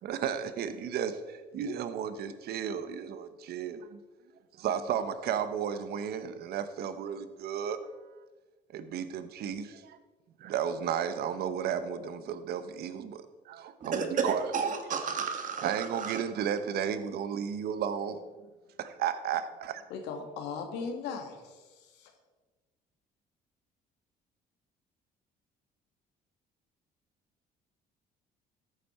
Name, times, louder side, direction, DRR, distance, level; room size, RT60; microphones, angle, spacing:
voice 1, 0.0-4.0 4.6-7.8 8.7-10.0 10.4-14.5 15.6-18.2 18.8-19.8, right 8 dB, 70° right, 11 dB, 1.0 m, -33 dB
voice 2, 13.8-16.2, right 5 dB, 50° right, 6 dB, 1.8 m, -32 dB
voice 3, 19.9-22.1, left 5 dB, 90° left, 4 dB, 1.9 m, -38 dB
14.0 x 8.5 x 4.4 m, 1.3 s
cardioid pair, 110°, 17 cm